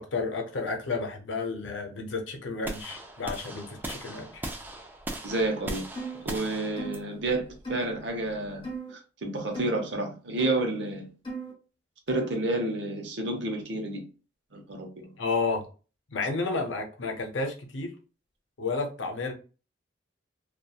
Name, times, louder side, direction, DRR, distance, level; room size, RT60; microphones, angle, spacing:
voice 1, 0.0-4.5 15.2-15.6 16.1-17.9 18.6-19.3, left 3 dB, 85° left, 0.6 m, -31 dB
sound 1, 2.6-8.7, right 1 dB, 10° right, 0.3 m, -39 dB
voice 2, 5.2-5.8 6.2-8.6 8.9-11.1 12.1-14.0 14.5-15.1, right 2 dB, 70° right, 0.7 m, -30 dB
sound 2, 5.9-6.2 6.8-7.0 7.6-7.9 8.6-8.9 9.5-9.8 10.4-10.6 11.2-11.5 12.1-12.4, right 3 dB, 25° left, 1.0 m, -36 dB
2.7 x 2.3 x 2.3 m
head